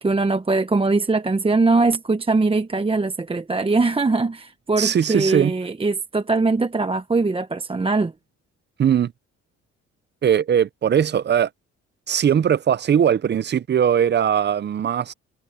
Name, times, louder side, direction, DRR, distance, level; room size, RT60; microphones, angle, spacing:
voice 1, 0.0-8.1, right 3 dB, 20° right, 0.9 m, -21 dB
voice 2, 4.8-5.5 8.8-9.1 10.2-11.5 12.1-15.1, right 8 dB, 35° right, 0.6 m, -20 dB
cardioid pair, 90°, 30 cm